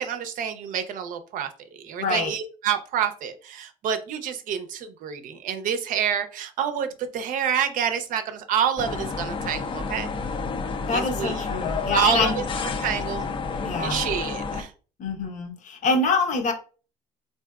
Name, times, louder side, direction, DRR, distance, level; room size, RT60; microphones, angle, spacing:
voice 1, 0.0-10.1 10.9-11.3 11.9-12.4 12.8-13.2 13.8-14.7, right 8 dB, 65° right, 9 dB, 0.5 m, -28 dB
voice 2, 2.0-2.3 10.9-12.4 13.6-14.0 15.0-16.5, left 3 dB, 55° left, 5 dB, 0.8 m, -25 dB
sound 1, 8.8-14.6, left 4 dB, 35° left, 0.4 m, -30 dB
3.4 x 2.6 x 2.3 m, 0.37 s
supercardioid pair, 75°, 15 cm